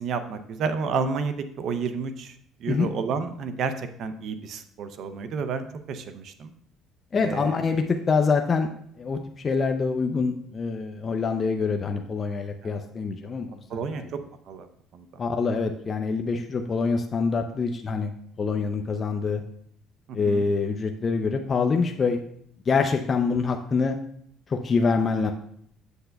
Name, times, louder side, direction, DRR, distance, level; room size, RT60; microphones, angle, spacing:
voice 1, 0.0-6.5 7.2-7.6 12.6-12.8 13.7-14.2 14.5-14.7 14.9-15.2 20.1-20.4, right 5 dB, 55° right, 10 dB, 0.5 m, -31 dB
voice 2, 7.1-8.7 9.0-13.6 15.2-18.1 18.4-19.4 20.1-22.2 22.7-23.9 24.5-25.3, left 4 dB, 30° left, 4 dB, 0.5 m, -25 dB
8.0 x 7.6 x 2.3 m, 0.67 s
cardioid pair, 125°, 0 cm